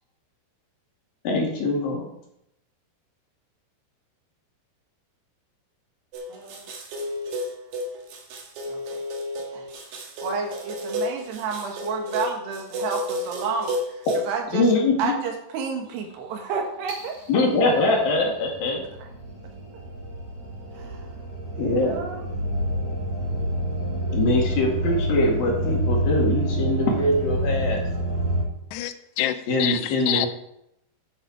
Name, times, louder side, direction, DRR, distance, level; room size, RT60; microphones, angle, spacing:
voice 1, 1.3-2.1 14.5-15.1 17.3-18.8 21.6-22.0 24.1-27.8 29.5-30.3, left 2 dB, 60° left, 3.6 m, -22 dB
sound 1, 6.1-14.3, left 1 dB, 60° right, 3.0 m, -32 dB
voice 2, 8.7-9.0 9.5-9.7 10.2-17.4 19.0-19.1 20.7-21.1 21.5-22.2, right 5 dB, 80° right, 3.6 m, -31 dB
sound 2, 16.9-28.4, right 1 dB, 35° right, 6.3 m, -28 dB
voice 3, 28.7-30.3, left 13 dB, 85° left, 2.8 m, -27 dB
10.0 x 7.9 x 5.2 m
omnidirectional pair, 4.9 m